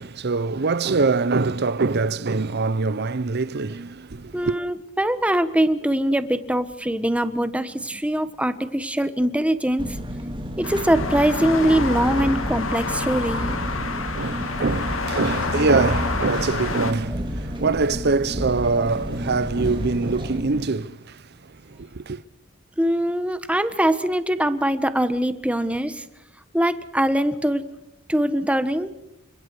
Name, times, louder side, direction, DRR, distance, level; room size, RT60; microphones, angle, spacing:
voice 1, 0.0-4.6 14.1-22.2, right 4 dB, 50° right, 0.7 m, -24 dB
voice 2, 4.3-9.9 10.6-13.4 22.8-26.0 26.5-27.6 28.1-28.9, right 1 dB, 5° right, 1.3 m, -22 dB
Engine, 9.8-20.4, equal, 25° right, 3.1 m, -31 dB
sound 1, 10.6-16.9, left 3 dB, 70° left, 2.6 m, -28 dB
29.5 x 25.5 x 4.8 m
head